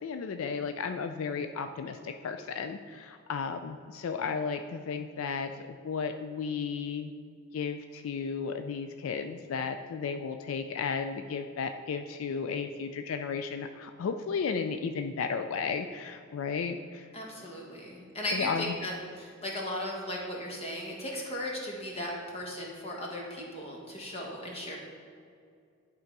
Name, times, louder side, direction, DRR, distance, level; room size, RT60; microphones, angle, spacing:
voice 1, 0.0-5.5 5.8-7.1 7.5-17.1 18.3-18.7, left 5 dB, 75° left, 7 dB, 0.4 m, -34 dB
voice 2, 17.1-24.8, left 1 dB, 30° left, -2 dB, 1.3 m, -37 dB
10.5 x 3.8 x 4.6 m, 2.3 s
head